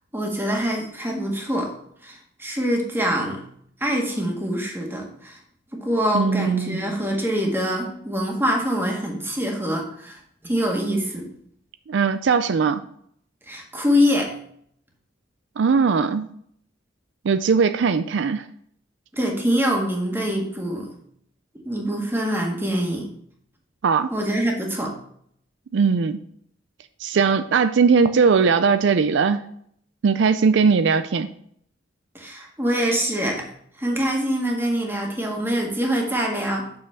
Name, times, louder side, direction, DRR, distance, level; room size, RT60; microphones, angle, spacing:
voice 1, 0.1-1.7 2.0-3.4 3.8-5.4 5.7-11.3 13.5-14.3 19.1-20.9 21.7-23.1 24.1-25.0 32.1-33.5 33.8-36.7, equal, 10° right, 0 dB, 1.7 m, -24 dB
voice 2, 6.1-6.9 11.9-12.8 15.6-16.3 17.3-18.4 23.8-24.1 25.7-26.2 27.0-29.4 30.0-31.3, right 5 dB, 70° right, 11 dB, 0.4 m, -19 dB
6.4 x 5.7 x 6.4 m, 0.66 s
head